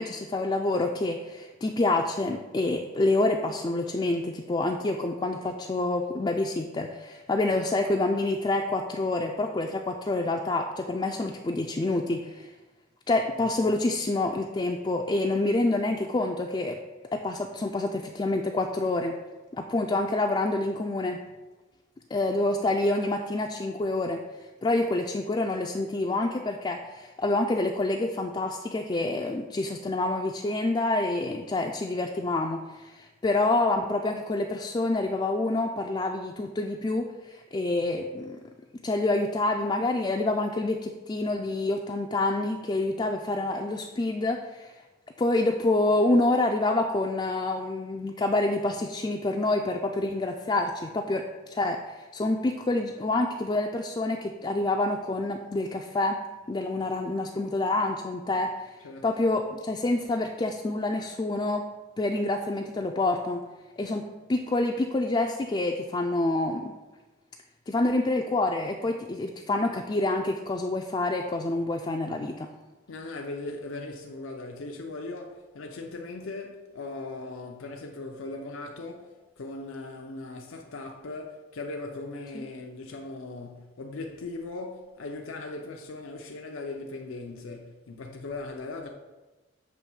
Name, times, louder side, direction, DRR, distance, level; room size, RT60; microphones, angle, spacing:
voice 1, 0.0-12.5 13.1-16.8 17.1-19.1 19.5-21.2 22.1-24.2 24.6-38.4 38.8-44.8 45.2-56.2 56.5-58.8 59.0-61.7 62.0-63.4 63.8-64.0 64.3-66.7 67.7-72.5 82.3-82.5, left 2 dB, 25° left, 0.3 m, -27 dB
voice 2, 72.9-88.9, left 2 dB, 90° left, 0.6 m, -39 dB
7.2 x 3.1 x 6.0 m
head